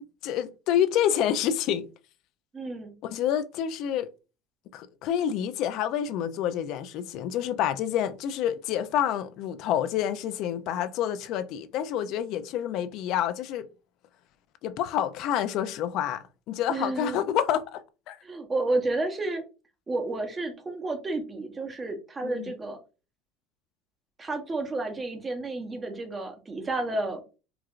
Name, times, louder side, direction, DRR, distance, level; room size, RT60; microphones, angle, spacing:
voice 1, 0.2-1.8 3.0-4.1 4.7-13.7 14.6-18.2 22.2-22.5, left 10 dB, 50° left, 0.4 m, -28 dB
voice 2, 2.5-2.9 16.7-17.2 18.2-19.4 19.9-22.8 24.2-27.2, right 2 dB, 15° right, 0.8 m, -31 dB
4.4 x 2.4 x 2.4 m
cardioid pair, 155°, 0 cm